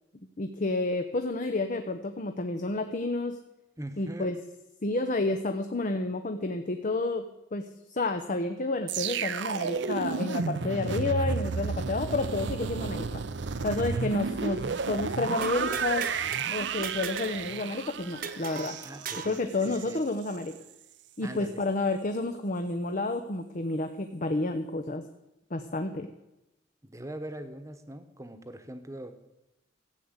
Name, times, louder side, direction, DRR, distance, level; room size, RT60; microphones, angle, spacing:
voice 1, 0.4-3.4 4.0-4.4 4.8-13.2 13.6-16.1 16.5-18.8 19.2-20.6 21.2-25.0 25.5-26.1, left 2 dB, 45° left, 7 dB, 0.8 m, -30 dB
voice 2, 3.8-4.4 18.8-20.0 21.2-21.6 26.8-29.1, right 1 dB, 15° right, 8 dB, 1.1 m, -42 dB
sound 1, 8.9-20.0 20.3-20.5, right 5 dB, 70° right, 0.6 m, -32 dB
sound 2, 12.3-19.4, left 1 dB, 60° left, 2.8 m, -55 dB
sound 3, 15.4-16.4 16.8-17.4 17.7-17.8 18.2-19.4, right 6 dB, 50° right, 1.0 m, -38 dB
14.0 x 8.2 x 8.0 m, 0.95 s
head